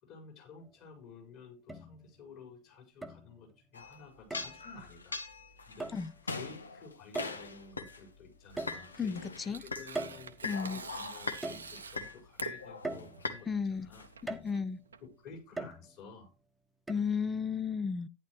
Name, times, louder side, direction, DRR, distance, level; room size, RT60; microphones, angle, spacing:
voice 1, 0.0-5.2 5.7-5.9 6.2-14.0 15.0-16.3, left 4 dB, 40° left, 5.0 m, -52 dB
sound 1, 0.6-0.7 1.7-2.3 3.0-3.6 4.3-4.6 5.8-6.1 7.2-7.7 8.6-9.3 10.0-10.8 11.4-12.1 12.8-13.6 14.3-14.8 15.6-16.2 16.9-17.0, right 2 dB, 5° right, 1.2 m, -41 dB
sound 2, 3.7-8.0 8.5-9.9 10.3-13.4 13.8-14.0, left 4 dB, 75° left, 1.1 m, -41 dB
Tearing, 8.9-15.6, right 6 dB, 70° right, 0.9 m, -48 dB
voice 2, 9.0-9.6 10.4-10.8 13.5-13.9 14.3-14.8 16.9-18.1, left 6 dB, 15° left, 0.6 m, -34 dB
11.5 x 10.5 x 3.0 m
figure-of-eight pair, 90°, 0 cm